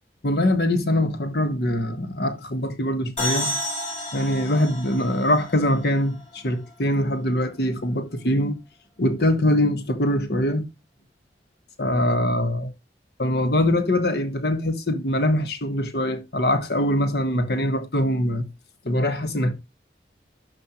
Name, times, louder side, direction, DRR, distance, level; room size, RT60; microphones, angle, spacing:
voice 1, 0.2-3.6 4.1-8.6 9.0-10.6 11.8-12.7 13.2-18.5 18.8-19.5, left 1 dB, 60° left, 1.3 m, -23 dB
sound 1, 3.2-6.7, left 1 dB, 40° left, 3.5 m, -31 dB
11.5 x 5.4 x 2.9 m
head